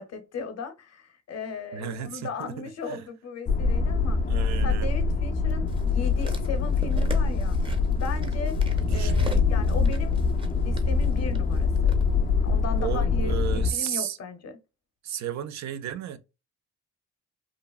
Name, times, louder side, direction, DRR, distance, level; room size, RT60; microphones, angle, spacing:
voice 1, 0.0-4.2 4.6-7.6 7.9-8.6 8.9-10.2 10.5-11.7 12.4-14.6, left 4 dB, 55° left, 0.7 m, -37 dB
voice 2, 1.7-3.0 4.3-4.9 8.9-9.5 12.8-14.2 15.0-16.2, right 10 dB, 65° right, 0.5 m, -34 dB
sound 1, 3.5-13.7, left 4 dB, 30° left, 0.4 m, -24 dB
sound 2, 5.7-12.0 12.8-12.9, right 2 dB, 15° right, 0.6 m, -43 dB
2.9 x 2.4 x 2.3 m
cardioid pair, 90°, 30 cm